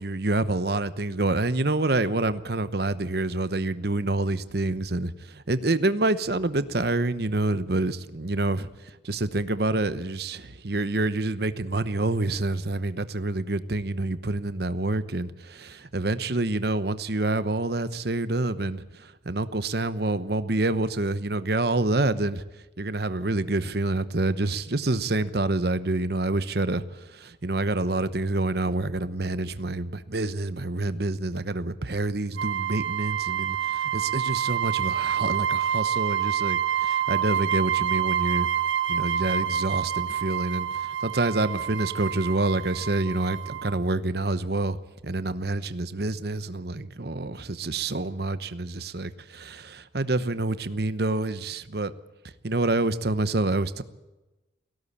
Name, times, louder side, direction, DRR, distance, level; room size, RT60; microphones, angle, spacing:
voice 1, 0.0-22.4 22.8-38.5 38.9-44.8 45.0-51.9 52.4-53.8, right 2 dB, 55° right, 13 dB, 1.0 m, -27 dB
sound 1, 32.4-43.8, right 9 dB, 80° right, 1.6 m, -27 dB
18.0 x 17.0 x 8.7 m, 1.0 s
head